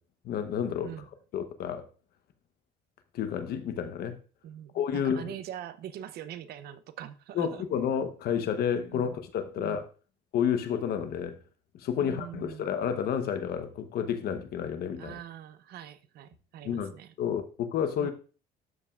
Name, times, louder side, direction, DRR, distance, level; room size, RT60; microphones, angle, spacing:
voice 1, 0.2-0.9 1.3-1.8 3.1-4.2 4.7-5.3 7.3-9.9 10.3-11.4 11.7-15.1 16.6-16.9 17.2-18.1, left 8 dB, 65° left, 1.0 m, -30 dB
voice 2, 4.4-7.7 8.9-9.1 9.6-9.8 12.0-12.7 15.0-17.1 18.0-18.1, right 10 dB, 70° right, 0.7 m, -43 dB
12.5 x 5.4 x 2.4 m
cardioid pair, 110°, 17 cm